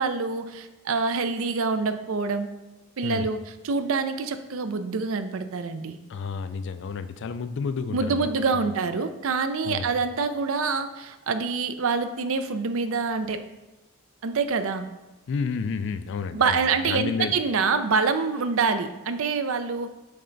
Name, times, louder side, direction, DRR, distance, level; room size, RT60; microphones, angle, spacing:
voice 1, 0.0-2.5 3.0-3.4 3.6-6.0 7.9-13.4 14.2-14.9 16.3-19.9, right 4 dB, 65° right, 10 dB, 0.5 m, -26 dB
voice 2, 6.1-8.7 9.6-9.9 15.3-17.4, left 5 dB, 55° left, 11 dB, 0.3 m, -31 dB
8.5 x 3.3 x 3.9 m, 1.1 s
head